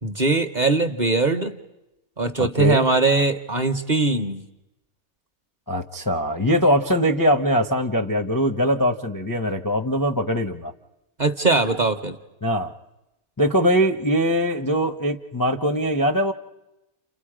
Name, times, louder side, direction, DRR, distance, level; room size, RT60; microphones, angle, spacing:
voice 1, 0.0-1.6 2.2-4.4 11.2-12.2, right 3 dB, 35° right, 8 dB, 0.9 m, -21 dB
voice 2, 2.4-2.8 5.7-10.7 12.4-12.7 13.4-16.3, equal, 20° left, 4 dB, 0.5 m, -22 dB
30.0 x 28.0 x 5.0 m, 0.97 s
omnidirectional pair, 1.6 m